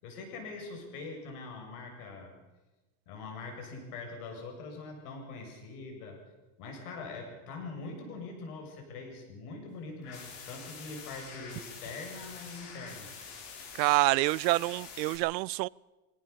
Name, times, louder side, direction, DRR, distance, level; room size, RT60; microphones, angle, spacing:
voice 1, 0.0-2.3 3.1-6.2 6.6-13.1, left 3 dB, 65° left, 2 dB, 7.0 m, -43 dB
sound 1, 10.0-15.2, left 5 dB, 45° left, 6.0 m, -46 dB
voice 2, 13.8-15.7, right 22 dB, 85° right, 25 dB, 0.6 m, -27 dB
22.5 x 17.5 x 7.0 m, 1.1 s
supercardioid pair, 180°, 49 cm